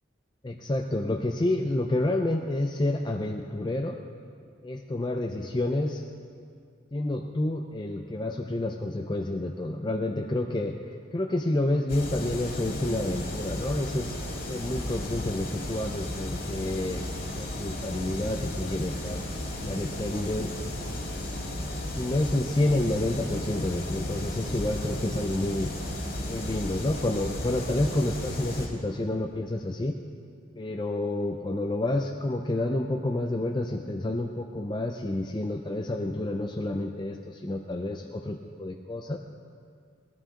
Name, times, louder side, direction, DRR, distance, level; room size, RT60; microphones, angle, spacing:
voice 1, 0.4-4.0 4.6-6.0 6.9-14.2 14.4-17.1 17.4-19.2 19.6-20.5 21.9-25.7 26.2-30.0 30.6-39.2, left 1 dB, 20° left, 3 dB, 0.5 m, -29 dB
sound 1, 11.9-28.7, left 1 dB, 50° left, 1.7 m, -34 dB
19.0 x 13.0 x 3.8 m, 2.2 s
head